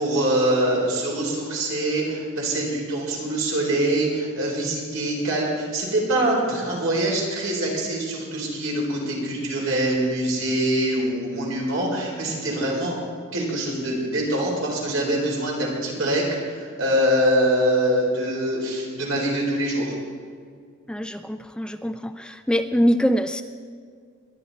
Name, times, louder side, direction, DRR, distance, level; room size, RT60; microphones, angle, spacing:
voice 1, 0.0-13.0 13.3-19.9, right 1 dB, 80° right, -2 dB, 4.1 m, -24 dB
voice 2, 20.9-23.4, equal, 5° left, 9 dB, 0.3 m, -23 dB
22.5 x 9.7 x 4.1 m, 2.1 s
head